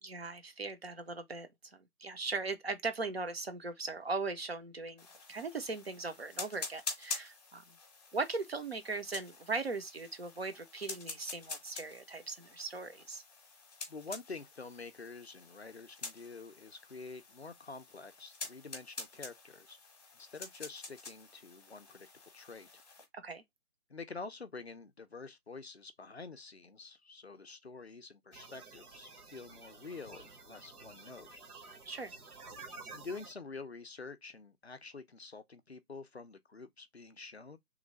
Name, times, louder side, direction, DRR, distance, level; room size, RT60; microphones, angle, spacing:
voice 1, 0.0-5.0 5.3-7.6 8.1-13.2 23.1-23.4 31.9-32.1, right 3 dB, 45° right, 0.6 m, -39 dB
sound 1, 5.0-23.1, left 4 dB, 25° left, 0.9 m, -47 dB
voice 2, 13.9-19.8 20.1-22.1 22.3-22.7 23.9-31.4 32.9-37.6, left 4 dB, 45° left, 0.4 m, -47 dB
sound 2, 28.3-33.3, right 3 dB, 75° right, 1.0 m, -51 dB
3.1 x 2.5 x 3.6 m
figure-of-eight pair, 150°, 45 cm